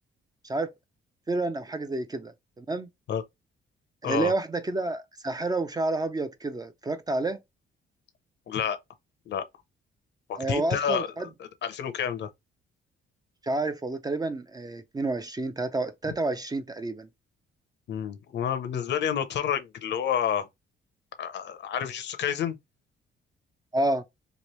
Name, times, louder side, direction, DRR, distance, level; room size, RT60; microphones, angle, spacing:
voice 1, 1.3-2.9 4.0-7.4 10.4-11.3 13.4-17.1 23.7-24.0, right 2 dB, 20° right, 0.4 m, -29 dB
voice 2, 8.5-8.8 9.3-9.4 10.3-12.3 16.1-16.2 17.9-20.5 21.2-22.6, left 8 dB, 60° left, 0.6 m, -29 dB
3.0 x 2.5 x 3.0 m
cardioid pair, 90°, 20 cm